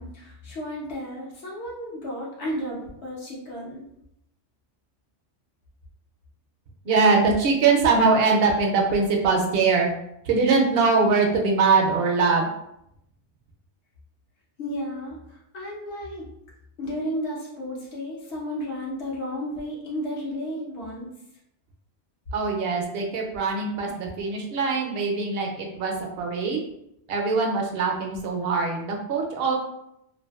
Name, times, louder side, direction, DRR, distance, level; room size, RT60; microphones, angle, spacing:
voice 1, 0.0-3.8 14.6-16.3 16.8-21.1, equal, 70° left, -4 dB, 1.0 m, -33 dB
voice 2, 6.9-9.9 10.3-12.5 22.3-26.6 27.1-29.6, right 4 dB, 65° right, 1 dB, 0.7 m, -22 dB
2.5 x 2.4 x 2.3 m, 0.79 s
omnidirectional pair, 1.2 m